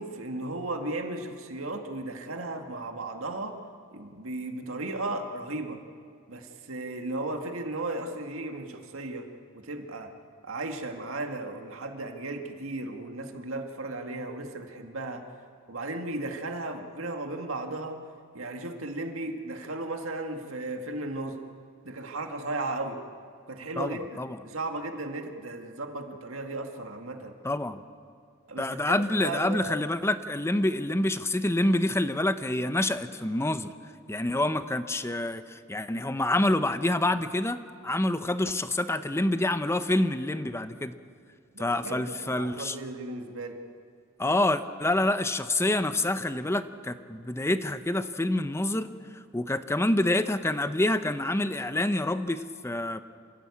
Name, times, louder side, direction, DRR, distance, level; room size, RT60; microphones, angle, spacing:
voice 1, 0.0-3.6 3.9-5.8 6.3-9.3 9.5-10.1 10.4-15.3 15.7-18.0 18.3-21.4 21.8-23.0 23.5-27.4 28.5-29.7 41.5-43.6, right 2 dB, 75° right, 4 dB, 1.9 m, -35 dB
voice 2, 23.8-24.4 27.4-27.8 28.6-33.7 34.1-37.6 37.8-40.9 41.6-42.8 44.2-53.0, left 1 dB, 15° left, 11 dB, 0.7 m, -27 dB
27.5 x 16.0 x 8.5 m, 2.2 s
head